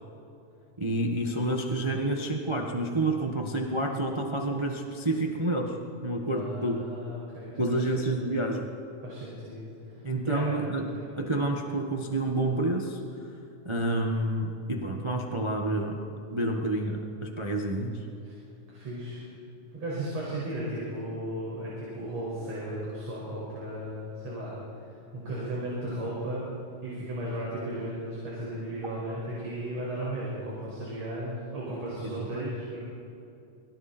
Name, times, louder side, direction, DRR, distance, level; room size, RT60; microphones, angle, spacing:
voice 1, 0.8-5.7 6.0-6.8 7.6-8.7 10.0-13.0 13.6-16.0 16.3-18.0 32.2-32.5, right 1 dB, 35° right, 1 dB, 0.4 m, -29 dB
voice 2, 6.3-8.2 9.0-11.1 18.2-18.4 18.7-19.2 19.7-24.6 24.9-26.4 26.8-32.8, right 1 dB, 60° right, -7 dB, 6.9 m, -35 dB
29.0 x 22.5 x 4.4 m, 2.8 s
omnidirectional pair, 3.5 m